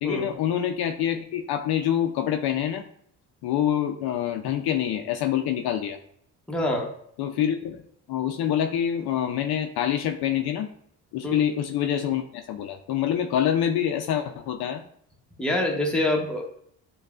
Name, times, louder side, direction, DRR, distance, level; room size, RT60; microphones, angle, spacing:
voice 1, 0.0-2.8 3.4-6.0 7.2-7.8 8.1-10.7 11.1-14.8, left 10 dB, 60° left, 5 dB, 0.6 m, -26 dB
voice 2, 6.5-6.9 11.2-11.4 15.4-16.4, left 1 dB, ahead, -1 dB, 0.9 m, -25 dB
6.4 x 2.3 x 2.4 m, 0.67 s
supercardioid pair, 70°, 43 cm